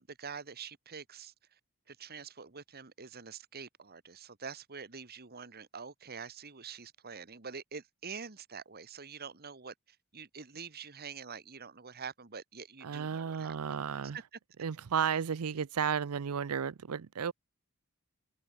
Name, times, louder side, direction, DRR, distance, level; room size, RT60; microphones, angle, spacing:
voice 1, 0.0-1.6 1.9-13.6 14.1-14.2, right 5 dB, 45° right, 1.6 m, -46 dB
voice 2, 12.8-14.2 14.6-17.3, right 7 dB, 80° right, 0.5 m, -33 dB
head